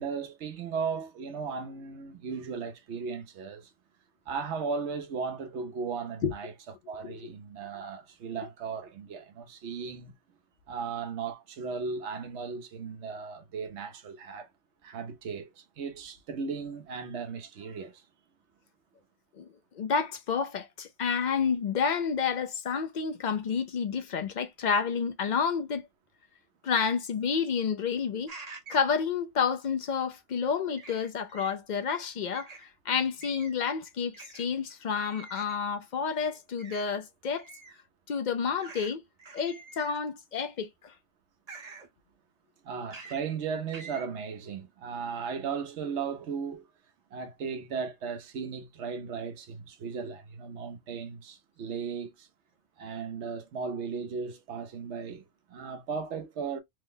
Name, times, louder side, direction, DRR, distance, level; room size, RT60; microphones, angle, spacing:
voice 1, 0.0-3.7 4.3-6.5 6.9-10.1 10.7-14.5 14.8-18.0 42.6-46.7 47.1-52.3 52.8-56.6, right 5 dB, 70° right, 1.0 m, -36 dB
voice 2, 19.8-25.9 26.6-28.3 28.7-37.5 38.1-39.0 39.3-40.9, left 6 dB, 60° left, 0.5 m, -30 dB
sound 1, 28.3-28.9 30.8-31.5 32.3-32.6 33.2-33.6 34.1-34.4 35.0-35.6 36.6-36.8 37.4-37.8 38.6-38.9 39.2-40.1 41.5-41.9 42.9-43.2 43.7-44.0, right 4 dB, 35° right, 0.8 m, -46 dB
3.2 x 2.0 x 3.7 m
omnidirectional pair, 1.2 m